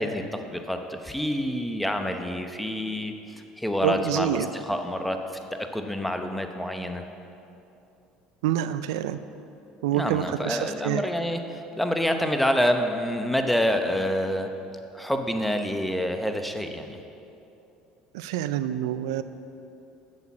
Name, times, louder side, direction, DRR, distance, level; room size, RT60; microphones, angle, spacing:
voice 1, 0.0-7.0 9.9-14.5 14.9-17.0, equal, ahead, 5 dB, 0.8 m, -27 dB
voice 2, 3.8-4.5 8.4-9.2 9.8-11.0 18.1-19.2, right 11 dB, 90° right, 13 dB, 0.4 m, -27 dB
8.3 x 6.8 x 7.2 m, 2.8 s
supercardioid pair, 95°, 3 cm